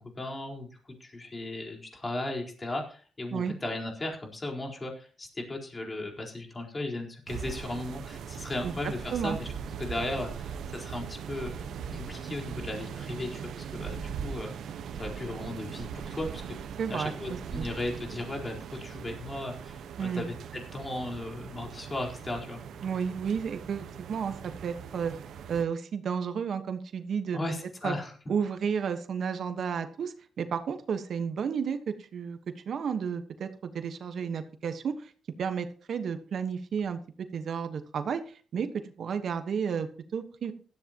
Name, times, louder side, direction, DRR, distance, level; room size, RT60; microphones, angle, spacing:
voice 1, 0.2-9.5 9.8-11.5 11.9-13.4 13.7-14.5 14.9-16.4 16.9-22.6 27.3-28.1, left 2 dB, 30° left, 1 dB, 4.4 m, -36 dB
sound 1, 7.3-25.6, right 7 dB, 85° right, 1.2 m, -40 dB
voice 2, 8.6-9.4 16.8-17.6 20.0-20.3 22.8-25.1 25.5-27.4 27.8-27.9 28.3-32.4 32.6-35.1 35.4-40.5, right 6 dB, 65° right, 9 dB, 1.3 m, -32 dB
16.5 x 13.5 x 3.0 m, 0.39 s
cardioid pair, 90°, 0 cm